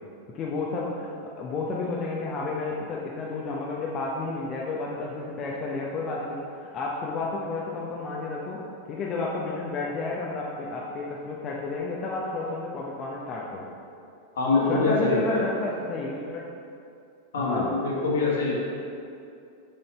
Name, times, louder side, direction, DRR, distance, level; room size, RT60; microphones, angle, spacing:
voice 1, 0.3-8.6 8.9-13.7 14.7-16.4 17.4-17.7, left 3 dB, 30° left, -3 dB, 0.8 m, -31 dB
voice 2, 14.3-15.4 17.3-18.5, left 3 dB, 65° left, -4 dB, 1.7 m, -24 dB
6.5 x 5.6 x 4.3 m, 2.5 s
figure-of-eight pair, 90°, 0 cm